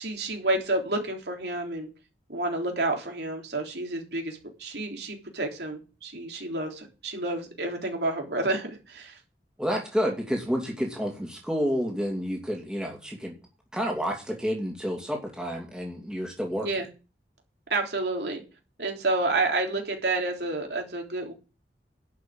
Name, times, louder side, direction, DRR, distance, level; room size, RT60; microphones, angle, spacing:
voice 1, 0.0-1.9 2.3-9.2 16.6-16.9 17.7-18.4 18.8-21.3, right 2 dB, 70° right, 3.6 m, -29 dB
voice 2, 9.6-13.4 13.7-16.7, equal, 5° right, 2.7 m, -29 dB
11.5 x 6.2 x 8.7 m
head